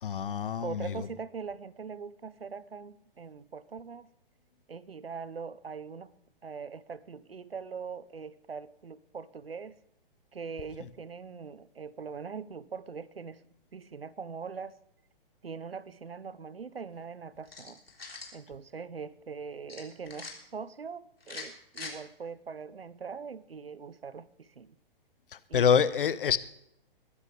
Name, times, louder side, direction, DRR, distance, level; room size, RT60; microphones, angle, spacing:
voice 1, 0.0-1.1 25.3-26.4, left 7 dB, 65° left, 1.0 m, -26 dB
voice 2, 0.6-4.1 4.7-6.1 6.4-9.8 10.3-13.4 13.7-14.8 15.4-17.8 18.3-24.8 25.5-25.8, right 5 dB, 80° right, 0.9 m, -42 dB
sound 1, 17.4-18.4 19.7-20.3 21.2-21.9, left 4 dB, 80° left, 3.7 m, -42 dB
21.5 x 11.0 x 3.4 m
figure-of-eight pair, 120°, 29 cm